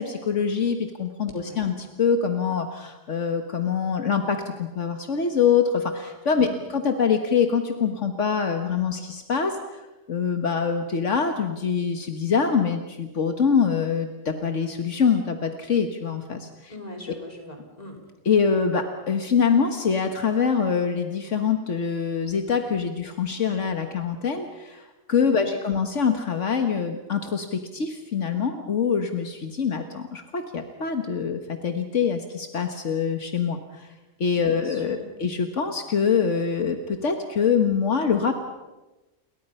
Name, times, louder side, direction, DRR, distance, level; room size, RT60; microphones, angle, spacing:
voice 1, 0.0-16.7 18.3-33.9 34.2-38.4, left 6 dB, 75° left, 6 dB, 1.8 m, -24 dB
voice 2, 1.3-1.7 6.4-6.7 16.7-18.1 25.2-25.6 34.3-35.1, left 1 dB, 30° left, 1 dB, 4.6 m, -42 dB
30.0 x 23.0 x 5.7 m, 1.1 s
omnidirectional pair, 1.3 m